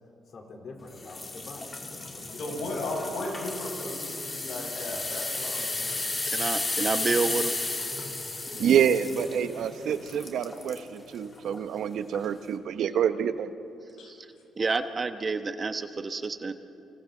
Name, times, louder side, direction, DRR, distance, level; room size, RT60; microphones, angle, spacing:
voice 1, 0.3-3.1 8.4-9.4, left 3 dB, 50° left, 2 dB, 3.5 m, -46 dB
sound 1, 1.0-10.9 11.4-11.6 12.1-12.2, left 2 dB, 25° left, 2.9 m, -34 dB
voice 2, 2.4-6.1 9.6-9.7 14.0-14.1, left 2 dB, 80° left, -1 dB, 6.2 m, -36 dB
voice 3, 6.3-7.5 14.1-14.2 14.6-16.5, right 4 dB, 35° right, 9 dB, 1.0 m, -29 dB
voice 4, 8.6-13.5, right 8 dB, 70° right, 11 dB, 0.8 m, -27 dB
29.5 x 26.0 x 3.9 m, 2.8 s
cardioid pair, 90°, 0 cm